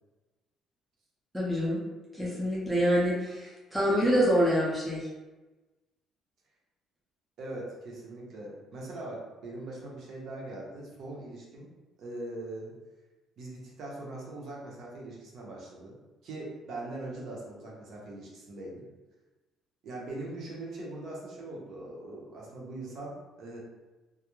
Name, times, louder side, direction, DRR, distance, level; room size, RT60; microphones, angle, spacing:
voice 1, 1.3-1.8 2.1-5.1, equal, 5° right, -6 dB, 0.4 m, -26 dB
voice 2, 7.4-11.6 12.0-12.7 13.4-16.0 16.2-18.9 19.8-23.6, right 2 dB, 50° right, -3 dB, 0.6 m, -41 dB
2.3 x 2.0 x 2.9 m, 1.1 s
cardioid pair, 165°, 0 cm